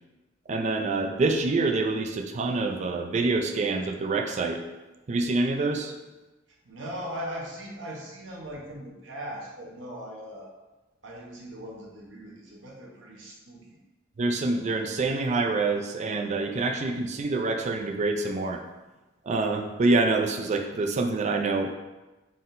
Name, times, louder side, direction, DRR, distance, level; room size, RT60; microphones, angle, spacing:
voice 1, 0.5-4.6 5.1-5.9 14.2-18.6 19.3-21.7, right 3 dB, 40° right, 4 dB, 0.4 m, -26 dB
voice 2, 6.6-10.5 11.0-13.7, equal, 75° right, -2 dB, 0.9 m, -39 dB
4.0 x 3.7 x 2.6 m, 1.1 s
head